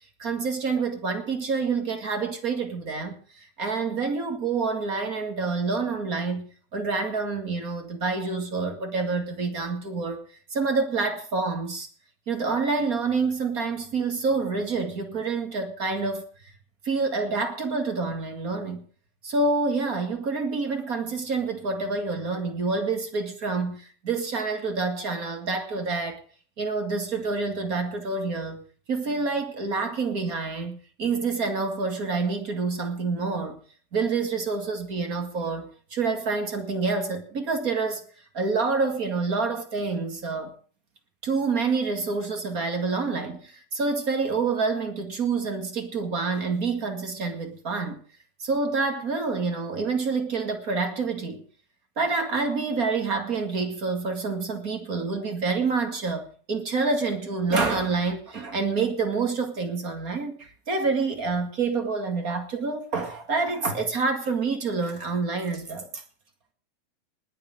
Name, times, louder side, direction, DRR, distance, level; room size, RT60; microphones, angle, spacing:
voice 1, 0.2-10.2 10.5-11.9 12.3-16.2 16.8-18.8 19.2-26.2 26.6-33.6 33.9-38.1 38.3-40.5 41.2-48.0 48.4-51.4 51.9-66.0, right 4 dB, 30° right, 1.7 m, -27 dB
20.0 x 6.9 x 7.5 m
omnidirectional pair, 4.3 m